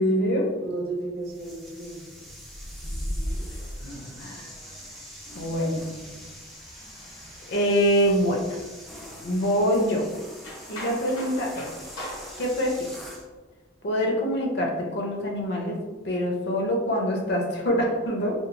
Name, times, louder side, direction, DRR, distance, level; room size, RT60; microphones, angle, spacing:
voice 1, 0.0-0.5 3.8-4.4 5.3-5.8 7.5-8.6 9.2-10.1 10.7-11.7 12.4-12.9 13.8-15.8 16.0-18.3, equal, 55° left, 0 dB, 0.5 m, -25 dB
voice 2, 0.6-2.0 2.8-3.5, right 2 dB, 50° right, -2 dB, 0.7 m, -35 dB
sound 1, 1.2-13.3, equal, ahead, 0.3 m, -40 dB
sound 2, 3.2-12.7, left 1 dB, 90° left, 0.9 m, -45 dB
2.9 x 2.3 x 2.5 m, 1.3 s
head